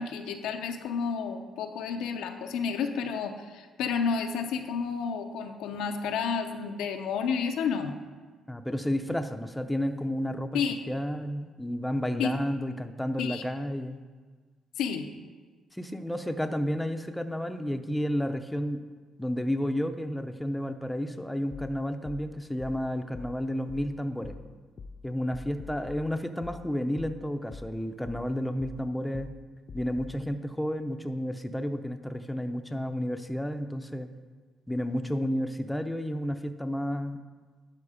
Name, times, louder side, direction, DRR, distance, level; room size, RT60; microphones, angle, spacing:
voice 1, 0.0-8.0 10.5-10.8 12.2-12.3 13.2-13.4 14.8-15.1, left 6 dB, 90° left, 6 dB, 0.7 m, -31 dB
voice 2, 8.5-10.6 10.9-14.0 15.7-18.8 19.2-24.4 25.0-29.3 29.7-34.1 34.7-37.2, equal, 5° left, 7 dB, 0.6 m, -31 dB
sound 1, 21.5-30.2, left 4 dB, 50° left, 0.6 m, -46 dB
11.5 x 4.5 x 5.0 m, 1.5 s
cardioid pair, 90°, 0 cm